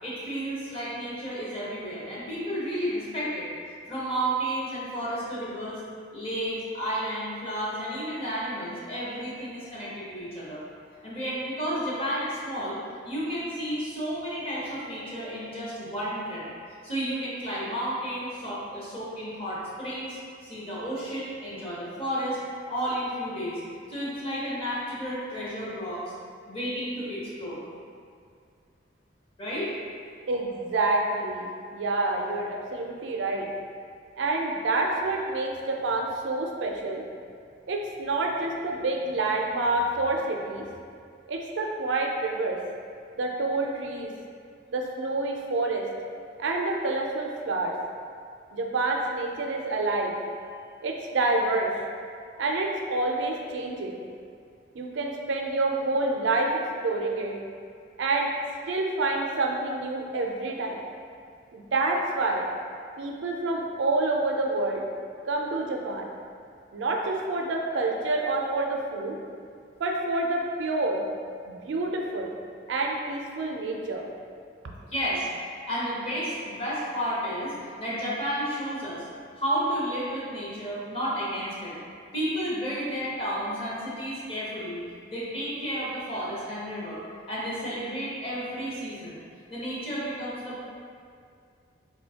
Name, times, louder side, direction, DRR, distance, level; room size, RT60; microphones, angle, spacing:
voice 1, 0.0-3.5 3.9-5.8 6.1-10.6 11.0-16.4 16.8-22.4 22.7-23.6 23.9-26.0 26.5-27.6 29.4-29.7 74.9-75.3 75.7-79.1 79.3-81.8 82.1-84.8 85.1-89.2 89.5-90.6, equal, 30° left, -8 dB, 0.9 m, -32 dB
voice 2, 30.3-33.5 34.2-37.0 37.7-40.7 41.3-42.6 43.2-44.1 44.7-45.8 46.4-47.7 48.5-50.1 50.8-51.7 52.4-54.0 54.7-57.4 58.0-58.3 58.7-60.8 61.5-62.5 63.0-64.8 65.3-66.1 66.7-69.2 69.8-71.0 71.5-72.3 72.7-74.0, right 2 dB, 85° right, 1 dB, 0.4 m, -28 dB
3.7 x 2.7 x 2.8 m, 2.3 s
head